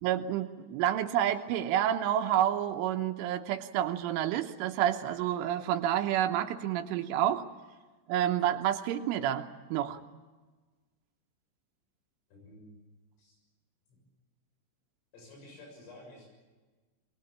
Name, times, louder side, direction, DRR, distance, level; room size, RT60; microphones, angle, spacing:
voice 1, 0.0-7.4 8.1-10.0, right 11 dB, 85° right, 6 dB, 3.4 m, -29 dB
voice 2, 12.3-12.7 13.2-13.4 13.9-14.0 15.1-16.3, left 2 dB, 80° left, 1 dB, 9.5 m, -51 dB
23.0 x 21.5 x 8.6 m, 1.3 s
omnidirectional pair, 5.8 m